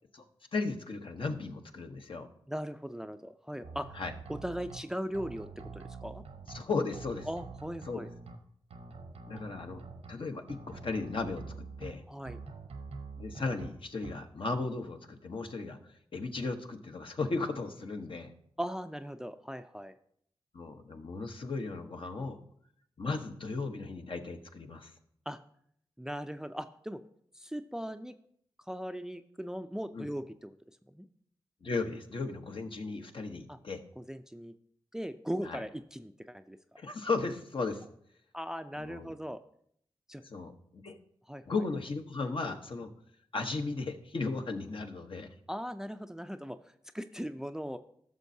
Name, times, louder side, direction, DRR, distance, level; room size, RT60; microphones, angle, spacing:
voice 1, 0.5-2.3 3.9-4.1 6.5-7.3 7.9-8.0 9.3-9.8 10.1-11.4 11.8-12.0 13.2-18.3 20.5-22.4 23.0-24.9 29.9-30.1 31.6-33.8 35.4-35.6 36.8-37.8 38.8-39.1 40.2-41.0 41.5-42.9 43.3-45.3, left 3 dB, 60° left, 5 dB, 1.0 m, -36 dB
voice 2, 2.5-4.0 4.3-5.5 5.7-6.2 7.3-8.1 9.3-9.4 12.1-12.4 18.6-19.9 25.3-25.4 26.0-27.0 27.3-28.2 28.7-30.6 30.9-31.1 33.5-33.6 34.0-34.5 34.9-36.6 38.3-39.4 40.1-40.2 41.3-41.4 45.5-47.8, equal, 5° right, 10 dB, 0.5 m, -39 dB
sound 1, 3.6-4.8 5.1-6.6 6.9-8.4 8.7-10.1 10.5-11.9 12.3-13.7 14.0-14.1, right 4 dB, 85° right, 0.9 m, -45 dB
14.5 x 6.3 x 2.7 m, 0.68 s
cardioid pair, 55°, 10 cm